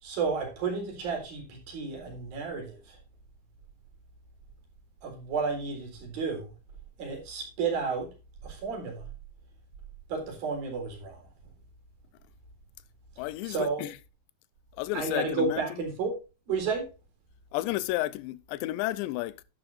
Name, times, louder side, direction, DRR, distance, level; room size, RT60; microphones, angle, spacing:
voice 1, 0.0-3.0 5.0-6.5 7.0-8.1 8.4-9.1 10.1-11.3 13.5-13.9 14.9-16.2 16.5-16.9, right 4 dB, 55° right, 5.3 m, -32 dB
voice 2, 13.2-14.0 14.7-15.6 17.5-19.4, left 17 dB, 85° left, 3.0 m, -32 dB
12.0 x 11.0 x 2.5 m
omnidirectional pair, 5.0 m